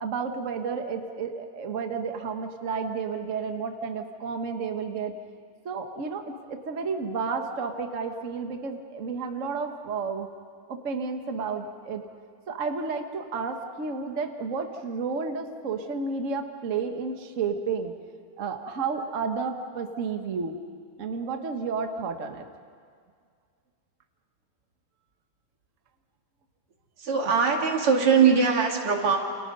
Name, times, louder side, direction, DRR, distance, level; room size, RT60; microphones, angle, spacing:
voice 1, 0.0-5.1 5.6-10.3 10.7-12.0 12.5-17.9 18.4-20.6 21.0-22.4, right 5 dB, 75° right, 5 dB, 0.7 m, -31 dB
voice 2, 27.0-29.2, right 6 dB, 45° right, 1 dB, 3.2 m, -21 dB
29.0 x 28.5 x 5.5 m, 2.1 s
omnidirectional pair, 3.7 m